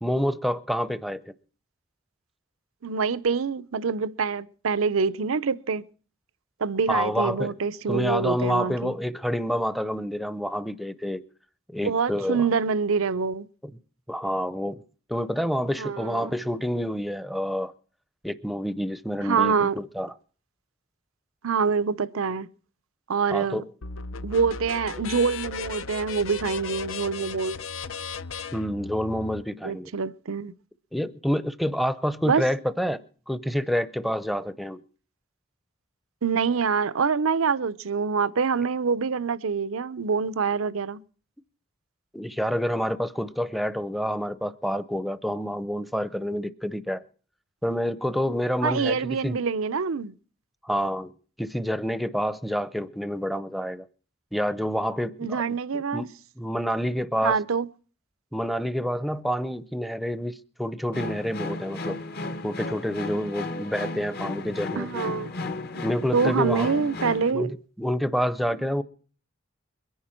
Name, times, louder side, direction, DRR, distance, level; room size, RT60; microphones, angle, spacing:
voice 1, 0.0-1.2 6.9-7.5 7.9-11.2 11.7-12.4 14.1-14.8 15.1-17.7 18.2-20.1 23.3-23.6 28.5-29.9 30.9-33.0 33.3-34.8 42.1-47.0 47.6-49.4 50.6-51.1 51.4-53.9 54.3-55.4 55.7-56.1 56.4-57.4 58.3-62.0 62.4-64.9 65.8-66.7 67.3-68.8, equal, ahead, 0.6 m, -28 dB
voice 2, 2.8-5.8 6.6-8.9 11.8-13.5 15.8-16.3 19.2-19.8 21.4-22.5 23.1-23.6 24.2-27.6 29.6-30.5 32.2-32.4 36.2-41.0 48.6-50.1 55.2-56.1 57.2-57.7 64.8-65.3 65.7-65.8 66.1-67.5 68.5-68.6, right 5 dB, 90° right, 0.6 m, -25 dB
sound 1, 23.8-29.4, left 5 dB, 80° left, 0.7 m, -36 dB
sound 2, 60.9-67.3, left 2 dB, 50° left, 1.0 m, -34 dB
22.5 x 10.5 x 4.4 m
head